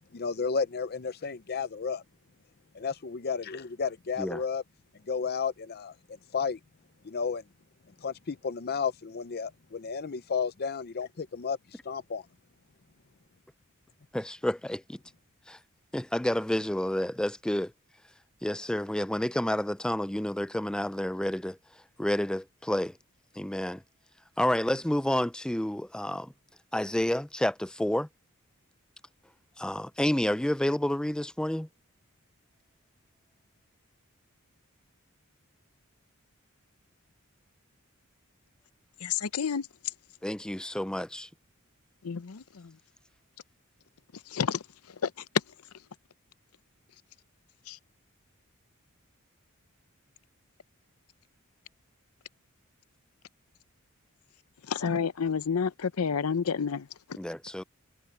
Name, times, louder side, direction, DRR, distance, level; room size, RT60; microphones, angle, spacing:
voice 1, 0.1-2.0 2.7-4.6 5.1-5.9 6.3-6.6 7.0-7.4 8.0-12.3, left 5 dB, 45° left, 0.6 m, -32 dB
voice 2, 14.1-15.0 15.5-15.6 15.9-17.7 18.4-21.6 22.0-23.0 23.3-23.8 24.4-26.3 26.7-28.1 29.6-31.7 40.2-41.3 57.2-57.6, left 1 dB, 5° left, 0.4 m, -29 dB
voice 3, 39.0-39.7 42.0-42.7 44.3-44.6 45.0-45.1 47.7-47.8 54.7-57.2, left 6 dB, 90° left, 0.7 m, -30 dB
head